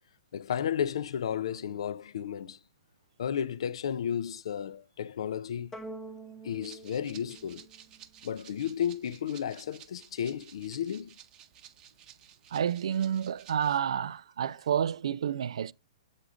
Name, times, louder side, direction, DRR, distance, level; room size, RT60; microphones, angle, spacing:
voice 1, 0.3-2.6 3.2-5.7 6.4-7.7 8.2-11.1, left 8 dB, 70° left, 0.5 m, -33 dB
sound 1, 5.7-8.3, right 2 dB, 15° left, 0.7 m, -46 dB
Rattle (instrument), 6.6-13.8, right 10 dB, 25° right, 0.7 m, -54 dB
voice 2, 12.5-15.7, right 9 dB, 75° right, 0.3 m, -29 dB
8.0 x 3.7 x 4.9 m
hypercardioid pair, 150°, 3 cm